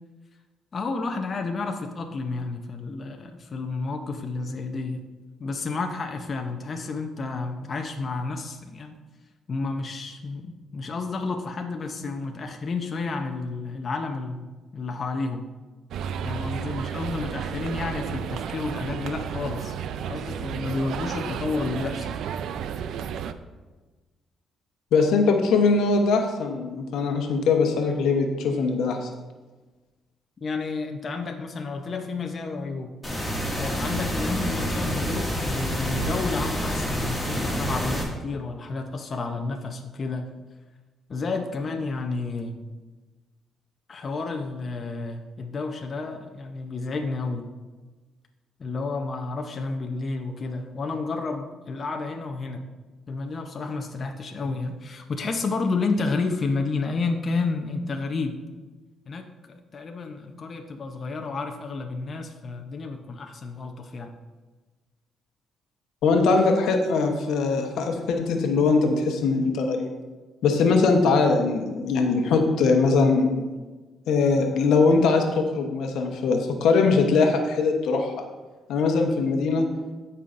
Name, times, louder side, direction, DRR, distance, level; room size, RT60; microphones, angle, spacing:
voice 1, 0.7-5.0 5.4-8.9 9.5-14.5 14.7-15.5 16.2-19.8 20.1-22.1 30.4-32.9 33.5-40.3 41.1-42.6 43.9-47.5 48.6-52.6 53.1-58.4 59.1-64.1, left 3 dB, 45° left, 4 dB, 0.7 m, -31 dB
sound 1, 15.9-23.3, right 8 dB, 75° right, 0.4 m, -32 dB
voice 2, 24.9-29.1 66.0-69.9 70.4-73.5 74.1-78.1 78.7-79.9, left 4 dB, 80° left, 4 dB, 1.0 m, -21 dB
sound 2, 33.0-38.0, equal, 5° left, 2.1 m, -28 dB
15.0 x 5.6 x 2.6 m, 1.3 s
cardioid pair, 90°, 0 cm